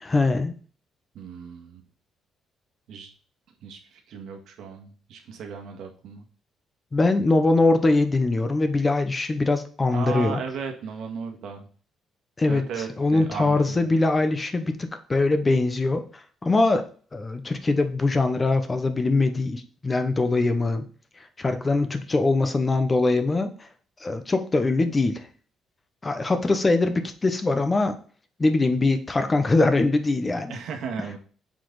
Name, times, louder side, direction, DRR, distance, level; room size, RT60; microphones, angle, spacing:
voice 1, 0.0-0.5 6.9-10.4 12.4-12.7 13.0-16.9 17.1-20.8 21.4-23.5 24.0-25.3 26.0-27.9 28.4-30.5, left 2 dB, 20° left, 8 dB, 0.9 m, -22 dB
voice 2, 1.1-1.8 2.9-3.1 3.6-6.3 9.9-11.7 12.5-13.9 30.5-31.2, right 6 dB, 70° right, 3 dB, 1.6 m, -35 dB
7.6 x 4.3 x 3.9 m, 0.42 s
cardioid pair, 145°, 0 cm